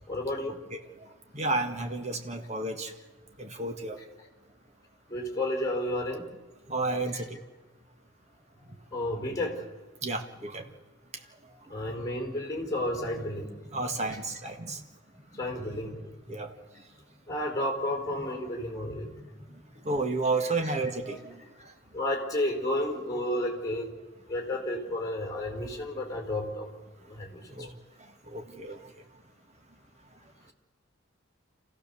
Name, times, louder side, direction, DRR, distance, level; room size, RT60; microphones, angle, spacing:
voice 1, 0.1-0.6 5.1-6.3 7.1-7.2 8.9-9.6 11.6-13.7 15.3-16.0 17.3-19.5 20.6-20.7 21.9-23.9 24.3-26.7 27.1-27.4, left 1 dB, 20° left, 2 dB, 4.3 m, -32 dB
voice 2, 1.3-2.9 3.4-4.0 6.7-7.4 10.0-10.6 13.7-14.8 16.3-16.5 19.8-21.7 27.5-27.7 28.3-28.8, right 3 dB, 35° right, 4 dB, 1.8 m, -31 dB
28.0 x 16.0 x 7.0 m, 1.3 s
head